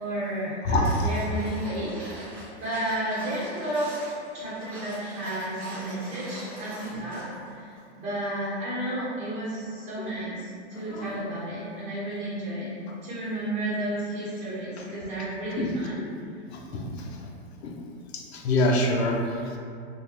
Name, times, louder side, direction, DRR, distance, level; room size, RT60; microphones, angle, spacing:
voice 1, 0.0-3.9 4.3-7.7 8.0-12.7 13.0-16.0, right 1 dB, 40° right, -9 dB, 1.2 m, -32 dB
voice 2, 0.6-1.1 6.9-7.0 10.0-10.1 10.7-11.2 15.6-15.7 16.0-16.1 16.5-17.3 17.6-17.8 18.1-19.6, left 1 dB, 65° left, 1 dB, 0.6 m, -27 dB
sound 1, 0.8-7.5 7.8-7.9, right 1 dB, 20° right, 0.7 m, -43 dB
3.4 x 2.3 x 2.9 m, 2.4 s
supercardioid pair, 180°, 35 cm